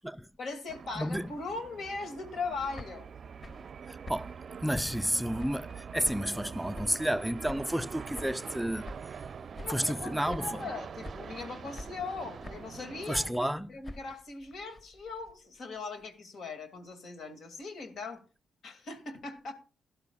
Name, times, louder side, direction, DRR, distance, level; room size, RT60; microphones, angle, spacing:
voice 1, 0.4-3.1 9.6-18.2 18.6-19.5, left 4 dB, 70° left, 2.3 m, -40 dB
sound 1, 0.7-13.3, right 6 dB, 55° right, 0.5 m, -44 dB
voice 2, 1.0-1.3 3.9-4.3 4.6-8.9 9.7-10.5 13.1-13.7, equal, 5° right, 0.4 m, -31 dB
sound 2, 2.5-5.8 6.0-7.2 7.5-9.3 9.5-10.0 10.3-10.8 11.0-11.5 11.7-12.8 13.1-15.3, left 1 dB, 40° left, 1.5 m, -47 dB
16.5 x 12.0 x 2.3 m
supercardioid pair, 60°, 0 cm